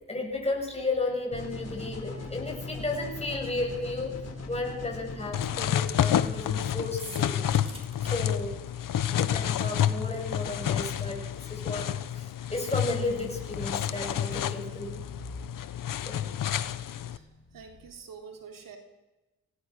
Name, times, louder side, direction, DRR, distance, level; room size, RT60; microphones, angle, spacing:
voice 1, 0.1-4.2 4.5-7.4 8.0-8.6 9.1-15.1 16.0-16.2, left 2 dB, 20° left, 1 dB, 8.0 m, -33 dB
sound 1, 1.3-5.7, left 3 dB, 45° left, 6.2 m, -39 dB
sound 2, 5.3-17.2, left 10 dB, 65° left, 1.1 m, -29 dB
sound 3, 7.0-8.2, right 1 dB, 15° right, 6.3 m, -44 dB
voice 2, 16.9-18.8, right 6 dB, 70° right, 3 dB, 3.7 m, -47 dB
25.5 x 18.0 x 6.6 m, 1.1 s
supercardioid pair, 60°, 34 cm